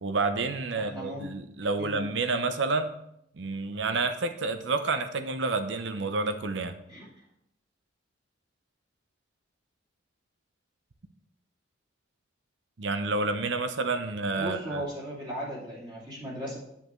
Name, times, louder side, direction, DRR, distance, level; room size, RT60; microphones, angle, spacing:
voice 1, 0.0-2.9 3.3-6.8 12.8-14.8, right 3 dB, 65° right, 9 dB, 0.7 m, -29 dB
voice 2, 0.7-1.3 1.8-2.1 6.9-7.0 14.3-16.6, equal, 25° right, -6 dB, 2.5 m, -37 dB
10.5 x 5.6 x 3.1 m, 0.77 s
head